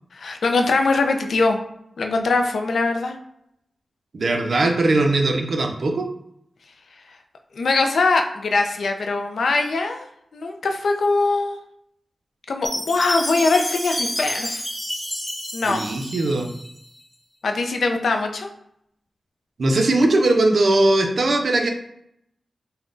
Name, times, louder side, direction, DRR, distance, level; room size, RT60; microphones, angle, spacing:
voice 1, 0.1-1.6 2.0-3.2 7.5-10.1 10.3-11.6 12.5-14.6 15.5-15.8 17.4-18.5, left 3 dB, 80° left, 4 dB, 0.3 m, -22 dB
voice 2, 4.1-6.1 15.6-16.5 19.6-21.7, right 2 dB, 65° right, 3 dB, 0.4 m, -19 dB
Chime, 12.6-16.8, equal, 5° left, 0.4 m, -29 dB
3.6 x 2.1 x 2.5 m, 0.75 s
wide cardioid pair, 105°, 0 cm